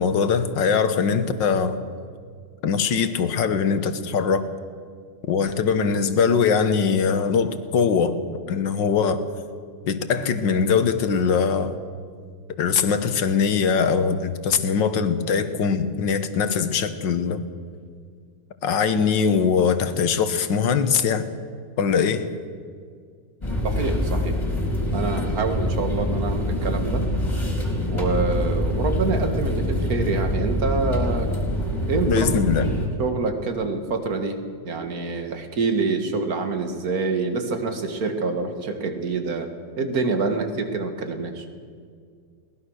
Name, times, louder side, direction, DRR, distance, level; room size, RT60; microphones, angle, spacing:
voice 1, 0.0-1.8 2.6-4.5 5.3-8.2 8.5-9.2 9.8-11.7 12.6-17.4 18.6-21.3 21.8-22.3 32.1-32.7, left 6 dB, 75° left, 10 dB, 1.9 m, -21 dB
sound 1, 23.4-32.9, equal, 15° left, 4.3 m, -25 dB
voice 2, 23.6-24.4 24.9-27.0 27.9-31.3 31.9-32.6 33.0-39.5 39.8-41.5, right 3 dB, 50° right, 6 dB, 2.2 m, -26 dB
22.0 x 19.0 x 6.4 m, 2.1 s
omnidirectional pair, 2.0 m